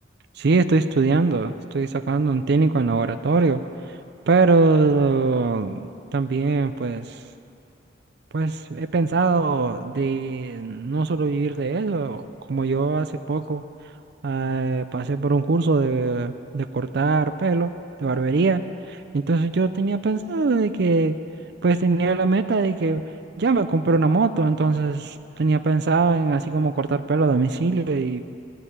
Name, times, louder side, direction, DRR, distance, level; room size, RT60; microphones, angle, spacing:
voice 1, 0.4-3.6 4.3-7.2 8.3-13.6 14.2-17.7 18.0-18.6 18.9-21.1 21.6-23.0 23.4-28.2, right 3 dB, 55° right, 10 dB, 0.5 m, -22 dB
16.5 x 6.9 x 10.0 m, 2.6 s
head